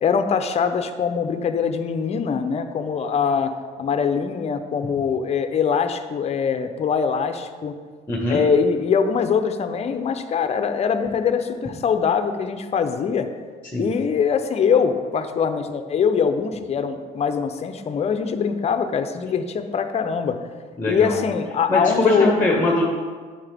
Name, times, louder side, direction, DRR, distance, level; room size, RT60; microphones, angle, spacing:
voice 1, 0.0-3.5 3.8-7.7 8.3-13.3 13.8-20.4 20.9-22.3, left 6 dB, 40° left, 8 dB, 0.7 m, -22 dB
voice 2, 8.1-8.4 13.7-13.9 20.8-21.2 21.7-22.8, left 2 dB, 10° left, -2 dB, 1.3 m, -21 dB
9.5 x 6.6 x 3.5 m, 1.5 s
cardioid pair, 110°, 17 cm